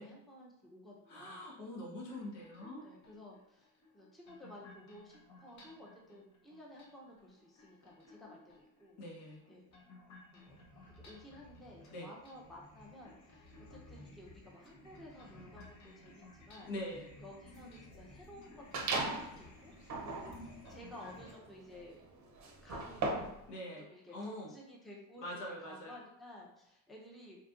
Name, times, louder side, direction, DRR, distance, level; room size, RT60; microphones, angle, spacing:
voice 1, 0.0-1.5 2.8-9.0 9.5-9.6 10.3-10.6 11.0-16.7 17.2-19.7 20.0-22.0 22.6-23.3 23.8-27.4, left 1 dB, ahead, -3 dB, 0.6 m, -54 dB
voice 2, 1.1-2.9 9.0-9.4 11.9-12.1 16.7-17.1 23.5-23.8 24.1-24.5 25.2-26.0, left 1 dB, 70° left, -3 dB, 1.1 m, -43 dB
sound 1, 2.0-21.3, left 2 dB, 40° left, 0.7 m, -57 dB
sound 2, 18.7-19.3 19.8-23.4, right 3 dB, 45° right, 0.6 m, -38 dB
2.9 x 2.4 x 2.4 m, 0.85 s
supercardioid pair, 75°, 43 cm